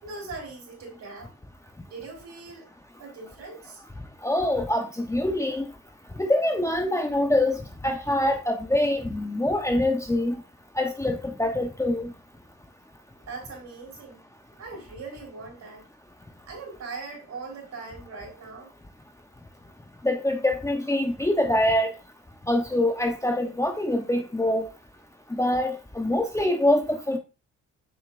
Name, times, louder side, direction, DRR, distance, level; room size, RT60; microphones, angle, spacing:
voice 1, 0.0-1.3 1.9-2.7 3.0-3.8 13.3-14.2 14.6-15.8 16.5-18.7, right 4 dB, 60° right, 4.0 m, -40 dB
voice 2, 4.2-5.6 6.2-7.6 7.8-10.4 10.8-12.1 20.0-21.9 22.5-24.6 25.4-27.2, left 1 dB, 10° left, 0.9 m, -24 dB
7.0 x 5.5 x 2.5 m
cardioid pair, 90°, 30 cm